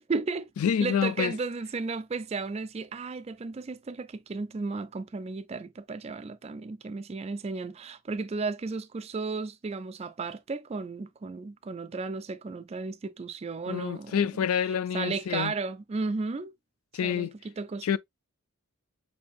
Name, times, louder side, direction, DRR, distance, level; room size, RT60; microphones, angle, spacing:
voice 1, 0.0-0.5 0.8-14.2 14.9-16.5 17.0-18.0, right 4 dB, 30° right, 0.3 m, -34 dB
voice 2, 0.6-1.3 13.7-15.5 16.9-17.3 17.8-18.0, left 8 dB, 85° left, 0.4 m, -27 dB
6.9 x 2.7 x 2.4 m
head